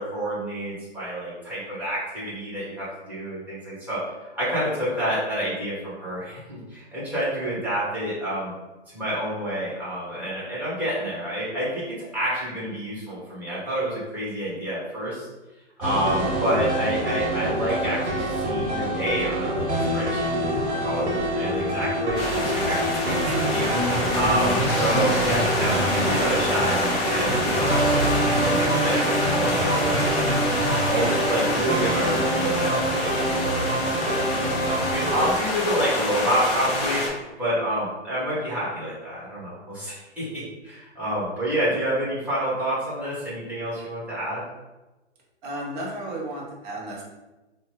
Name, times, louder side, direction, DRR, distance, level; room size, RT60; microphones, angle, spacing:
voice 1, 0.0-8.5 8.9-11.8 12.1-15.3 15.8-20.5 20.8-26.7 27.1-30.4 30.9-44.4, right 1 dB, 5° right, -9 dB, 1.2 m, -28 dB
sound 1, 15.8-35.3, right 1 dB, 70° right, 1.1 m, -26 dB
sound 2, 22.2-37.1, left 2 dB, 15° left, 0.5 m, -27 dB
sound 3, 23.0-31.2, right 3 dB, 85° right, 0.6 m, -30 dB
voice 2, 45.4-47.0, right 1 dB, 35° right, -3 dB, 0.8 m, -33 dB
2.8 x 2.1 x 3.0 m, 1.1 s
hypercardioid pair, 125°, 35 cm